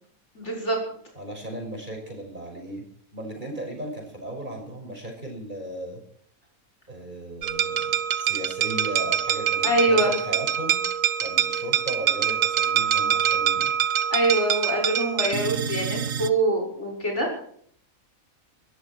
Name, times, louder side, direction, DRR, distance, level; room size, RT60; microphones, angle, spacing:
voice 1, 0.3-0.8 9.6-10.1 14.1-17.3, right 2 dB, 50° left, -1 dB, 6.3 m, -24 dB
voice 2, 1.1-2.8 3.1-6.0 6.9-10.8 11.1-13.7, right 1 dB, 35° right, 1 dB, 6.5 m, -36 dB
sound 1, 7.4-16.3, right 9 dB, 65° right, 1.3 m, -25 dB
21.5 x 14.5 x 4.6 m, 0.62 s
omnidirectional pair, 1.5 m